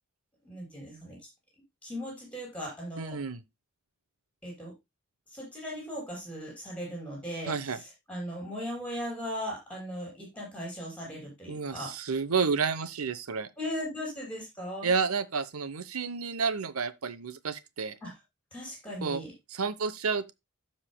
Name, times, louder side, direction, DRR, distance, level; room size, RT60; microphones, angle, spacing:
voice 1, 0.4-1.2 1.8-3.2 4.4-4.7 5.3-11.9 13.6-14.9 18.0-18.1 18.5-19.3, equal, 5° left, 6.1 m, -38 dB
voice 2, 3.0-3.4 7.5-7.8 11.5-13.5 14.8-18.0 19.0-19.2 19.5-20.3, right 5 dB, 90° right, 0.8 m, -30 dB
15.0 x 5.6 x 2.2 m
head